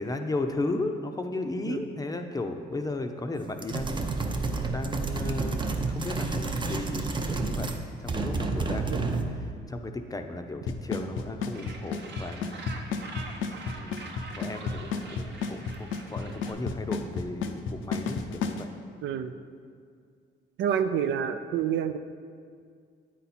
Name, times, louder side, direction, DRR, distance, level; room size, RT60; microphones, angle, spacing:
voice 1, 0.0-4.4 4.6-7.7 8.0-12.8 13.6-18.7, left 2 dB, 20° left, 5 dB, 0.5 m, -35 dB
sound 1, 3.6-7.8 8.1-9.4, right 3 dB, 25° right, 0.6 m, -30 dB
Drum kit / Snare drum / Bass drum, 10.7-18.6, left 5 dB, 80° left, 0.5 m, -31 dB
Gull seagull, 11.5-16.5, right 3 dB, 60° right, 0.9 m, -44 dB
voice 2, 19.0-19.3 20.6-22.0, right 8 dB, 75° right, 10 dB, 0.4 m, -28 dB
9.4 x 4.2 x 4.2 m, 2.1 s
cardioid pair, 90°, 20 cm